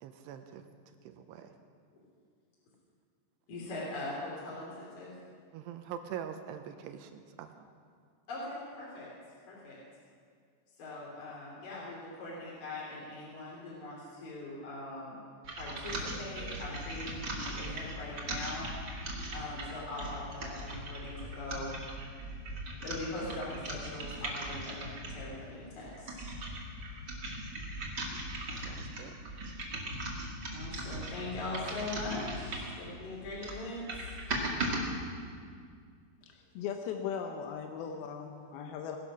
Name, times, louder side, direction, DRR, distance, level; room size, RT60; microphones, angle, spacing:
voice 1, 0.0-1.6 5.5-7.5 28.6-29.2, right 9 dB, 80° right, 7 dB, 2.7 m, -44 dB
voice 2, 3.5-5.1 8.3-9.1 9.5-9.8 10.8-15.2 15.5-18.7 19.3-21.7 22.8-26.1 30.5-34.2, left 2 dB, 50° left, -6 dB, 4.4 m, -41 dB
sound 1, 15.4-25.3 25.8-32.8 33.2-34.8, right 1 dB, 40° right, 1.5 m, -39 dB
voice 3, 36.2-39.0, left 7 dB, 75° left, 4 dB, 2.4 m, -38 dB
19.5 x 11.0 x 6.2 m, 2.1 s
omnidirectional pair, 5.2 m